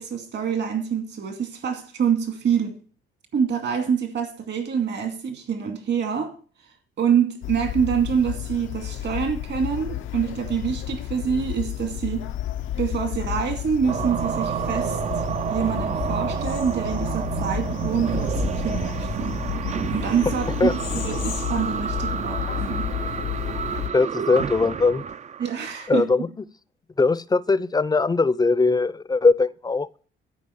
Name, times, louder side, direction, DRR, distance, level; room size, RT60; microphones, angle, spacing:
voice 1, 0.0-2.8 3.3-6.3 7.0-12.3 12.8-15.2 15.5-19.4 19.9-22.9 25.4-26.1, right 7 dB, 60° right, 2.3 m, -26 dB
sound 1, 7.4-23.9, left 12 dB, 75° left, 0.6 m, -31 dB
sound 2, 13.9-25.9, right 7 dB, 35° right, 0.4 m, -29 dB
voice 2, 20.6-21.0 23.9-25.0 25.9-26.3 27.0-30.0, left 3 dB, 20° left, 0.5 m, -21 dB
13.0 x 5.1 x 7.8 m
cardioid pair, 90°, 20 cm